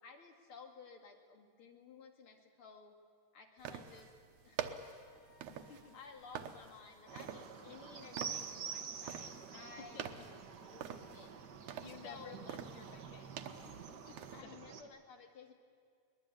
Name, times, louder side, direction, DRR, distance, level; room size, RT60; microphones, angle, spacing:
voice 1, 0.0-2.9 3.3-4.1 4.4-4.6 5.6-11.3 12.0-12.4 14.3-15.5, left 5 dB, 50° left, 4 dB, 2.8 m, -55 dB
sound 1, 3.6-14.4, right 8 dB, 85° right, 2.5 m, -47 dB
Colors of Light - Rainbow, 4.8-9.1, left 3 dB, 30° left, 2.8 m, -68 dB
voice 2, 5.5-6.0 9.5-9.6 9.9-10.2 11.1-11.2 11.8-13.7 14.0-14.5, left 8 dB, 65° left, 9 dB, 1.2 m, -56 dB
sound 2, 7.1-14.8, right 6 dB, 55° right, 1.2 m, -48 dB
23.0 x 20.0 x 9.1 m, 2.1 s
omnidirectional pair, 3.4 m